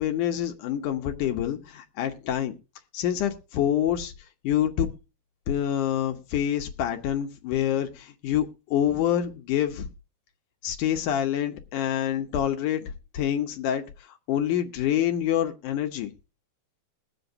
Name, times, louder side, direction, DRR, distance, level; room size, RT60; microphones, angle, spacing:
voice 1, 0.0-2.5 2.9-4.1 4.4-4.9 5.5-9.9 10.6-13.8 14.3-16.1, left 10 dB, 70° left, 2.1 m, -26 dB
21.0 x 7.9 x 2.6 m
omnidirectional pair, 4.3 m